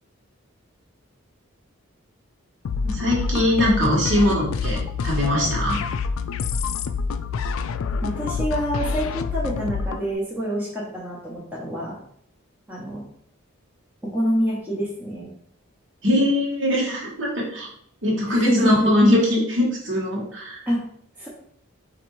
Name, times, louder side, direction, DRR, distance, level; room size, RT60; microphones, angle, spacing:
sound 1, 2.6-10.1, left 5 dB, 75° left, 0.3 m, -27 dB
voice 1, 2.8-4.8 5.0-5.8 16.0-17.7 18.0-20.6, left 1 dB, 60° right, -5 dB, 1.3 m, -21 dB
voice 2, 8.0-12.0 12.7-13.0 14.0-15.3 18.3-18.9 20.7-20.8 21.2-21.3, equal, 10° right, -7 dB, 0.8 m, -26 dB
4.3 x 2.6 x 4.6 m, 0.67 s
head